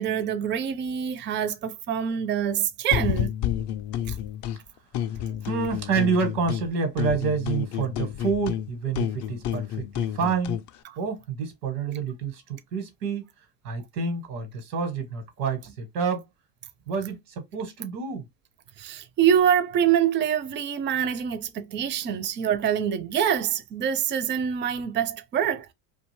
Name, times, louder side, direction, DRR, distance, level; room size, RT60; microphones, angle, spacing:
voice 1, 0.0-3.3 4.1-4.2 18.8-25.7, right 9 dB, 25° right, 0.4 m, -25 dB
sound 1, 2.9-4.6 4.9-6.7 7.0-10.7, left 10 dB, 45° left, 0.4 m, -30 dB
voice 2, 5.4-10.6 11.0-12.4 12.7-13.3 13.6-16.2 16.9-18.2, right 5 dB, 85° right, 1.2 m, -28 dB
2.5 x 2.3 x 3.1 m
hypercardioid pair, 80°, 46 cm